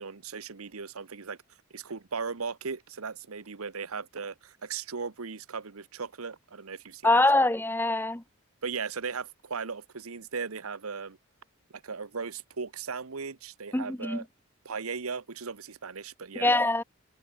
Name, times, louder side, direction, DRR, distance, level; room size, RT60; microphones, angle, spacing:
voice 1, 0.0-1.4 1.7-7.5 8.6-11.2 11.7-14.2 14.6-16.5, right 5 dB, 90° right, 1.1 m, -37 dB
voice 2, 7.0-8.2 13.7-14.2 16.4-16.8, left 2 dB, 10° left, 0.9 m, -24 dB
head